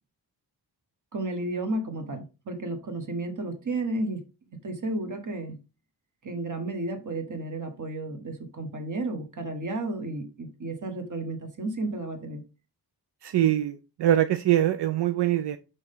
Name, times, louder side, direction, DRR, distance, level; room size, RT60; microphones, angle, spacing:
voice 1, 1.1-4.2 4.6-5.6 6.2-12.4, right 2 dB, 50° right, 1.4 m, -32 dB
voice 2, 13.2-15.6, right 12 dB, 80° right, 0.6 m, -23 dB
6.0 x 5.5 x 3.6 m
wide cardioid pair, 130°, 40 cm